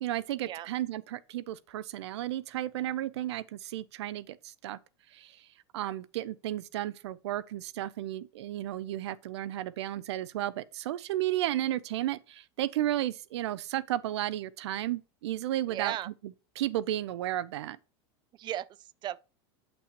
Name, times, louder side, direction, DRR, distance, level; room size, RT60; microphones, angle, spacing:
voice 1, 0.0-4.8 5.1-5.3 5.7-15.9 16.6-17.8, right 13 dB, 85° right, 0.6 m, -33 dB
voice 2, 15.7-16.1 18.3-19.2, right 12 dB, 35° right, 0.4 m, -36 dB
8.4 x 6.1 x 3.0 m
supercardioid pair, 125°, 14 cm